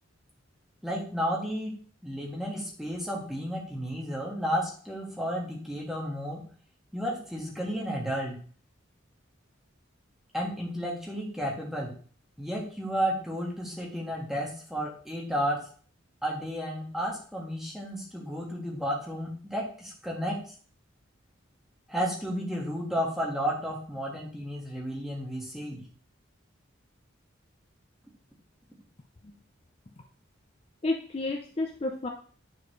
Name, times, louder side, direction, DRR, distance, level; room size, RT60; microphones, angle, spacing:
voice 1, 0.8-1.7 2.0-6.4 6.9-8.4 10.3-11.9 12.4-15.6 16.2-20.4 21.9-25.8, equal, ahead, -3 dB, 1.6 m, -32 dB
voice 2, 30.8-32.1, left 2 dB, 30° left, 3 dB, 0.5 m, -31 dB
9.5 x 4.2 x 3.2 m, 0.43 s
head